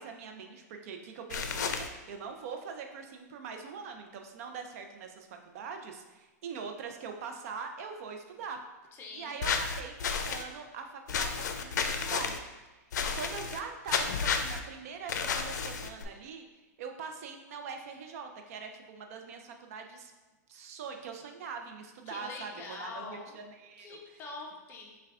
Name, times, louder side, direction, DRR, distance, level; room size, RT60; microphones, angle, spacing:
voice 1, 0.0-8.6 9.1-12.4 12.7-16.5 16.8-20.1 20.5-24.0, right 5 dB, 55° right, 4 dB, 0.5 m, -43 dB
sound 1, 1.3-1.9 9.4-10.4 11.1-12.4 12.9-13.6 13.9-14.6 15.1-16.0, left 6 dB, 85° left, 0.4 m, -31 dB
voice 2, 8.9-9.4 22.1-23.4 23.8-25.0, left 3 dB, 25° left, 0 dB, 0.7 m, -44 dB
5.7 x 2.3 x 3.5 m, 1.2 s
supercardioid pair, 150°, 9 cm